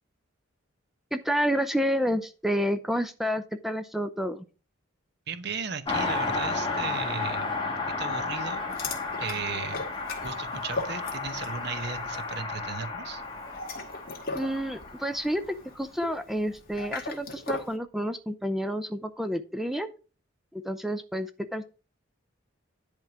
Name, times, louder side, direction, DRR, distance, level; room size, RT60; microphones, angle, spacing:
voice 1, 1.1-4.5 14.3-15.4 15.7-19.9 20.5-21.6, equal, ahead, 9 dB, 0.5 m, -29 dB
voice 2, 5.3-8.6 9.2-9.8 10.2-13.2, right 6 dB, 55° right, 11 dB, 0.8 m, -36 dB
Car passing by, 5.9-15.8 16.1-16.2, left 3 dB, 25° left, 1.4 m, -33 dB
sound 1, 8.7-11.6 11.9-12.2 13.4-17.8, left 3 dB, 45° left, 1.9 m, -38 dB
10.5 x 3.7 x 5.8 m, 0.35 s
head